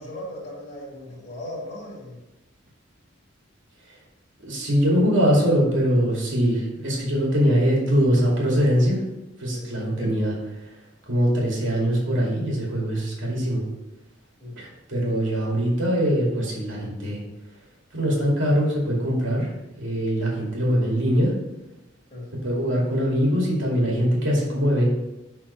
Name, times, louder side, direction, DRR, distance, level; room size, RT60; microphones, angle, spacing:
voice 1, 0.0-2.2 9.5-9.7 10.0-10.2 14.4-14.6 22.1-22.3, left 1 dB, 30° left, -6 dB, 2.0 m, -37 dB
voice 2, 4.4-9.0 9.4-10.3 11.1-13.6 14.6-17.2 17.9-19.5 19.8-21.3 22.4-24.9, equal, 70° right, -3 dB, 2.3 m, -22 dB
6.3 x 4.3 x 5.6 m, 0.99 s
head